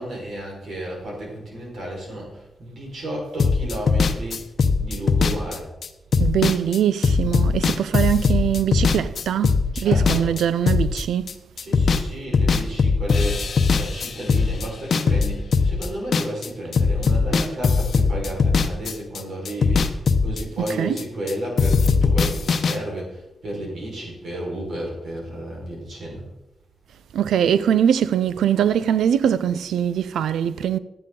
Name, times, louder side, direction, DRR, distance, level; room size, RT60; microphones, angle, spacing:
voice 1, 0.0-2.3 2.6-4.4 4.8-5.7 9.7-10.3 11.6-19.9 20.2-23.1 23.4-26.2, right 1 dB, 75° right, 4.6 m, -32 dB
sound 1, 3.4-12.1 12.3-16.5 16.7-21.3 21.6-22.8, left 4 dB, 70° left, 0.8 m, -20 dB
voice 2, 6.2-11.3 20.6-21.0 27.1-30.8, right 9 dB, 90° right, 0.4 m, -22 dB
13.0 x 9.8 x 3.8 m
cardioid pair, 55°, 0 cm